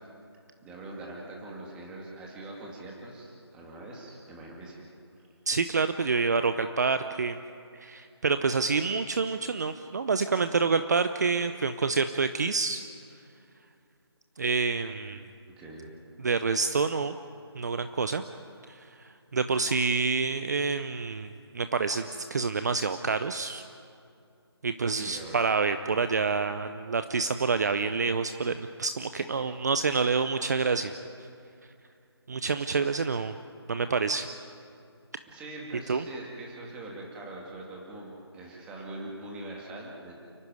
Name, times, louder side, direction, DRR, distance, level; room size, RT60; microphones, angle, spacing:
voice 1, 0.6-4.8 15.5-15.9 24.9-25.5 35.3-40.1, right 2 dB, 5° right, -2 dB, 2.2 m, -42 dB
voice 2, 5.5-7.4 7.8-12.8 14.4-15.2 16.2-17.2 17.5-18.2 18.7-18.9 19.3-22.0 22.3-23.6 24.6-30.9 32.3-33.4 33.7-34.3 35.9-36.0, right 4 dB, 40° right, 10 dB, 0.7 m, -27 dB
29.5 x 11.5 x 9.5 m, 2.5 s
figure-of-eight pair, 165°, 14 cm